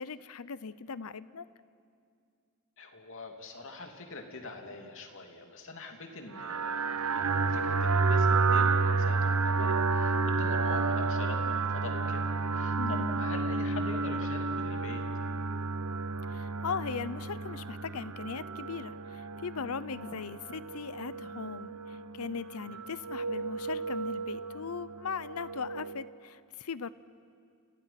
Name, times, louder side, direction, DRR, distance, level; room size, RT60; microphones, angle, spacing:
voice 1, 0.0-1.5 12.8-13.2 16.3-26.9, left 5 dB, 80° left, 16 dB, 0.7 m, -39 dB
voice 2, 2.8-6.8 7.1-15.0 22.6-22.8, left 3 dB, 65° left, 3 dB, 2.9 m, -44 dB
sound 1, 6.3-26.0, right 4 dB, 80° right, 0.9 m, -31 dB
29.5 x 29.5 x 5.9 m, 2.3 s
head